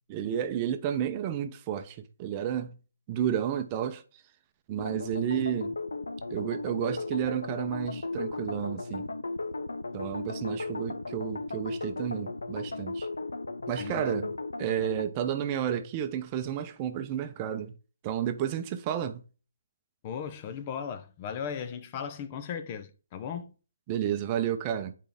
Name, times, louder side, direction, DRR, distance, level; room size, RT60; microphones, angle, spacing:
voice 1, 0.1-2.8 3.1-4.0 4.7-5.8 6.3-9.1 9.9-13.1 13.7-14.3 14.6-17.7 18.0-19.2 23.9-24.9, right 9 dB, 25° right, 0.7 m, -31 dB
sound 1, 4.8-15.1, left 3 dB, 85° left, 0.6 m, -36 dB
voice 2, 13.8-14.3 20.0-23.5, left 7 dB, 30° left, 0.6 m, -37 dB
8.2 x 4.6 x 3.5 m
figure-of-eight pair, 150°, 0 cm